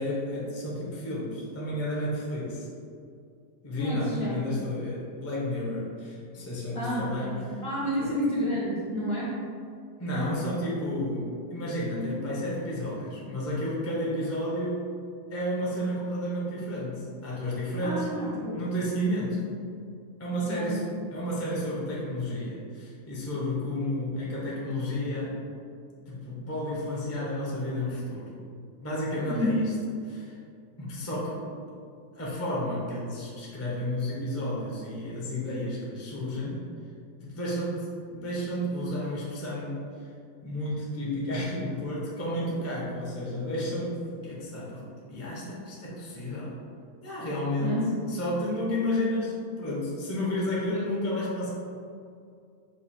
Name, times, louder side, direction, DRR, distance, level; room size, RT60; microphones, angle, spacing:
voice 1, 0.0-2.7 3.6-7.4 8.0-8.2 10.0-14.9 15.3-19.4 20.2-20.8 21.1-25.4 26.1-28.3 28.8-29.7 30.0-30.4 30.8-31.5 32.1-36.6 37.2-40.1 40.4-46.5 47.0-51.5, left 1 dB, 15° left, -6 dB, 0.5 m, -31 dB
voice 2, 3.8-4.3 6.7-9.3 17.8-18.6 20.4-20.8 29.3-29.6 47.6-47.9 50.7-50.8, equal, 50° left, -7 dB, 0.8 m, -30 dB
4.9 x 2.4 x 4.2 m, 2.3 s
omnidirectional pair, 1.8 m